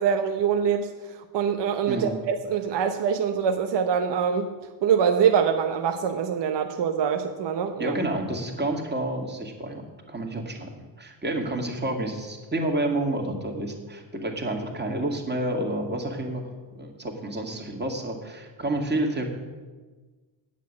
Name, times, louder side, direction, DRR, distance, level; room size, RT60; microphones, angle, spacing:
voice 1, 0.0-4.5 4.8-8.0, right 7 dB, 60° right, 6 dB, 0.9 m, -24 dB
voice 2, 1.9-2.2 7.8-9.8 10.1-10.7 11.0-19.3, right 1 dB, 20° right, 2 dB, 2.2 m, -29 dB
8.4 x 7.3 x 8.5 m, 1.3 s
cardioid pair, 90°, 48 cm